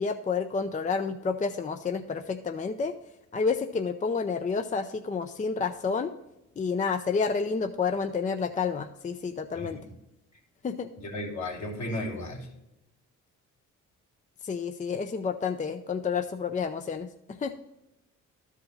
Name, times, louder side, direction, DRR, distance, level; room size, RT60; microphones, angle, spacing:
voice 1, 0.0-2.9 3.3-6.1 6.6-9.8 10.6-10.9 14.4-17.6, left 5 dB, 25° left, 7 dB, 0.5 m, -30 dB
voice 2, 11.0-12.5, left 1 dB, 65° left, -1 dB, 2.8 m, -34 dB
12.5 x 5.0 x 4.0 m, 0.91 s
cardioid pair, 90°, 30 cm